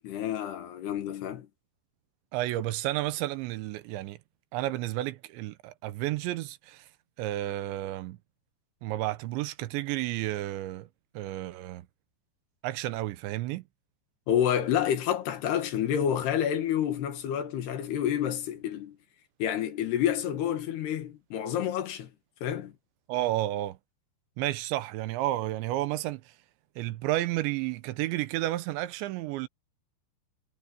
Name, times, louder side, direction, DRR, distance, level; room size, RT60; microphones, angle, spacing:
voice 1, 0.0-1.5 14.3-19.0 19.4-22.1 22.4-22.7, left 10 dB, 65° left, 3.5 m, -29 dB
voice 2, 2.3-4.2 4.5-6.9 7.2-8.2 8.8-10.9 11.1-11.9 12.6-13.6 23.1-23.8 24.4-26.3 26.8-29.5, right 15 dB, 80° right, 3.1 m, -31 dB
omnidirectional pair, 5.3 m